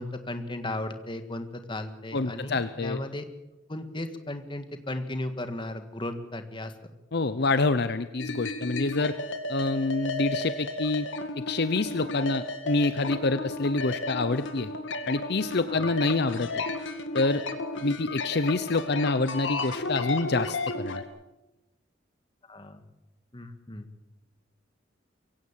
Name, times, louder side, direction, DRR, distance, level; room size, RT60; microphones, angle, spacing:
voice 1, 0.0-3.2 3.7-6.7 15.7-15.9 22.5-22.8 23.3-23.9, left 1 dB, 25° left, 8 dB, 1.8 m, -35 dB
voice 2, 2.1-3.0 7.1-9.1 9.5-11.1 11.4-14.7 15.1-16.5 17.1-17.4 17.8-21.0, left 3 dB, 55° left, 12 dB, 0.8 m, -27 dB
sound 1, 8.2-21.0, left 2 dB, 70° left, 2.1 m, -34 dB
23.5 x 16.5 x 7.5 m, 0.96 s
head